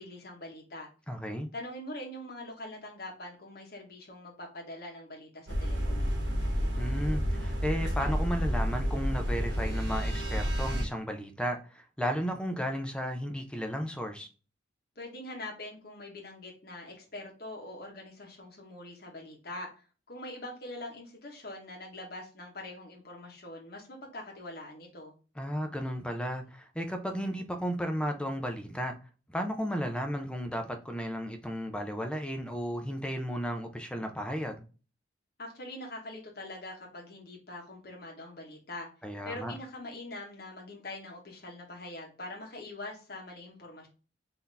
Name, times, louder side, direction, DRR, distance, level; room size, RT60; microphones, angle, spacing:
voice 1, 0.0-0.9 1.5-6.1 15.0-25.1 35.4-38.9 39.2-43.9, left 1 dB, 55° left, 1.1 m, -43 dB
voice 2, 1.1-1.5 6.8-14.3 25.4-29.0 29.3-34.6 39.0-39.5, equal, 5° left, 0.5 m, -34 dB
sound 1, 5.5-10.8, equal, 70° right, 1.5 m, -30 dB
4.0 x 2.8 x 3.3 m
head